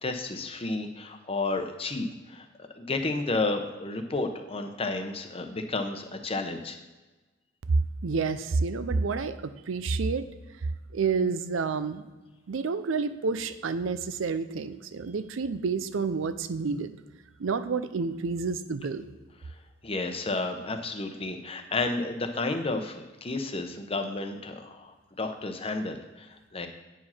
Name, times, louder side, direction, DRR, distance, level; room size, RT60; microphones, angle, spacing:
voice 1, 0.0-2.5 2.7-6.8 19.5-19.6 19.8-26.7, left 3 dB, 30° left, 6 dB, 0.8 m, -32 dB
voice 2, 8.0-10.3 10.9-12.1 12.5-17.0 17.4-19.1, right 4 dB, 85° right, 12 dB, 0.5 m, -29 dB
9.1 x 4.9 x 5.6 m, 1.2 s
head